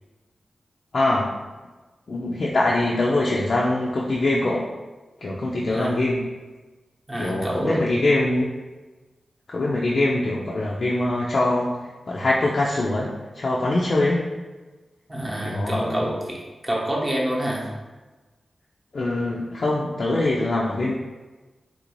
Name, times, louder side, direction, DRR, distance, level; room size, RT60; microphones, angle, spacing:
voice 1, 0.9-1.3 2.1-4.7 5.2-6.2 7.2-8.5 9.5-11.7 12.1-13.1 13.3-14.2 15.4-16.0 18.9-20.9, left 2 dB, 60° left, -5 dB, 0.4 m, -23 dB
voice 2, 7.1-7.8 15.1-17.7, right 1 dB, 20° right, -3 dB, 0.8 m, -27 dB
3.4 x 2.5 x 3.0 m, 1.2 s
wide cardioid pair, 80°, 0 cm